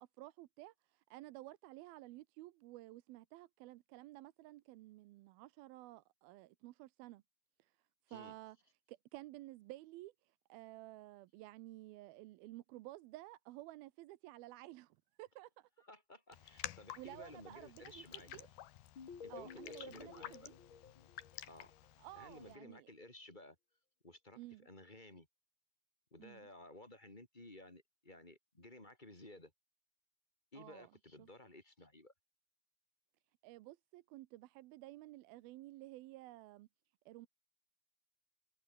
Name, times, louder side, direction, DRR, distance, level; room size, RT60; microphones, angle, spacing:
voice 1, 0.0-7.2 7.6-7.8 8.1-8.6 8.9-15.7 16.4-16.5 17.0-18.5 19.3-20.6 22.0-22.9 24.4-24.7 26.2-26.5 30.6-30.9 31.2-31.3 33.4-36.7 37.1-37.3, right 17 dB, 85° right, 2.6 m, -53 dB
voice 2, 15.8-18.5 19.2-20.5 21.4-21.7 22.2-23.6 24.0-25.3 26.1-29.5 30.5-32.1, left 1 dB, 15° left, 3.2 m, -56 dB
Raindrop, 16.3-22.6, left 13 dB, 85° left, 3.3 m, -52 dB
sound 1, 19.0-21.9, left 6 dB, 35° left, 2.8 m, -53 dB
omnidirectional pair, 4.3 m